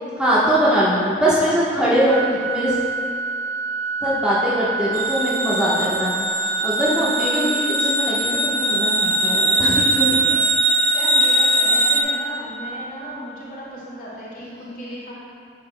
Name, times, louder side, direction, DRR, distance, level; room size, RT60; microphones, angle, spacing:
voice 1, 0.2-2.8 4.0-10.2 14.4-14.7, equal, 5° right, -10 dB, 1.2 m, -22 dB
Organ, 2.1-13.1, right 4 dB, 75° right, 1.0 m, -28 dB
sound 1, 4.9-12.0, right 1 dB, 25° right, 0.9 m, -21 dB
voice 2, 10.7-15.1, equal, 50° left, -8 dB, 2.0 m, -35 dB
11.0 x 7.7 x 2.2 m, 2.3 s
head